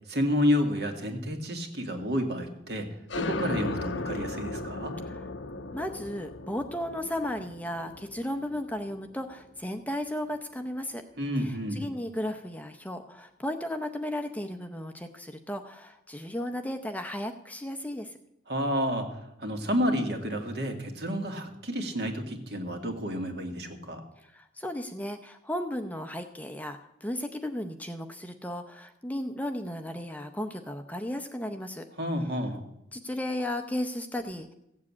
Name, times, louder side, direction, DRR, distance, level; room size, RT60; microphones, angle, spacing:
voice 1, 0.1-2.9 3.2-5.0 11.2-11.9 18.5-24.0 32.0-32.6, equal, 60° right, 4 dB, 2.0 m, -30 dB
sound 1, 3.1-10.4, left 2 dB, 85° left, 0.8 m, -37 dB
voice 2, 5.7-11.0 11.4-18.2 24.2-31.9 32.9-34.5, left 1 dB, 10° left, 7 dB, 0.6 m, -35 dB
15.5 x 7.4 x 8.5 m, 0.83 s
head